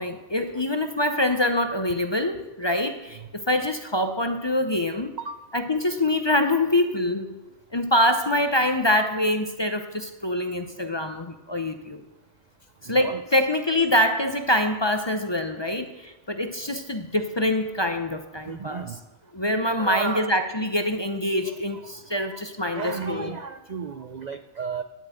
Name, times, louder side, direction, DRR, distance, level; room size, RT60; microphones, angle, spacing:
voice 1, 0.0-5.1 5.5-7.4 7.7-12.0 12.8-18.8 19.3-23.3, left 1 dB, 30° left, 7 dB, 0.6 m, -25 dB
voice 2, 12.8-13.2 16.6-16.7 18.4-19.0 19.8-20.4 21.4-24.8, right 5 dB, 70° right, 10 dB, 0.4 m, -34 dB
10.5 x 7.7 x 8.8 m, 1.1 s
omnidirectional pair, 1.4 m